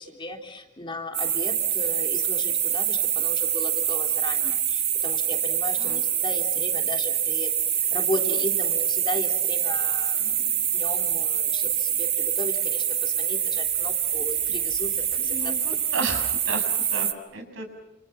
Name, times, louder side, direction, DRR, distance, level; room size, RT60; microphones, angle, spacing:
voice 1, 0.0-15.5, left 1 dB, 25° left, 3 dB, 3.4 m, -36 dB
sound 1, 1.1-17.1, right 9 dB, 30° right, 1.6 m, -25 dB
voice 2, 15.1-17.7, right 3 dB, 65° right, 6 dB, 6.9 m, -33 dB
29.5 x 28.5 x 5.8 m, 0.94 s
head